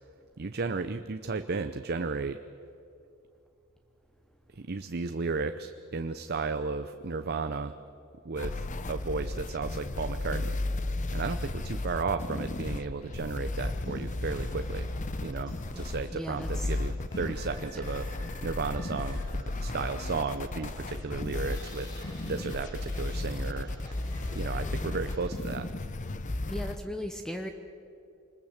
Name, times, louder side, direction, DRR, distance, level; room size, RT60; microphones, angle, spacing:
voice 1, 0.4-2.4 4.5-7.7 8.2-10.6 11.1-14.9 15.2-18.1 18.4-21.9 22.2-23.9 24.3-25.7, right 4 dB, 45° right, 9 dB, 0.7 m, -34 dB
sound 1, 8.4-26.8, left 2 dB, 35° left, 0.8 m, -34 dB
sound 2, 13.7-25.4, equal, 20° left, 5.3 m, -51 dB
voice 2, 16.1-16.7 26.5-27.5, equal, 5° left, 5 dB, 0.9 m, -37 dB
25.5 x 21.0 x 7.3 m, 2.7 s
head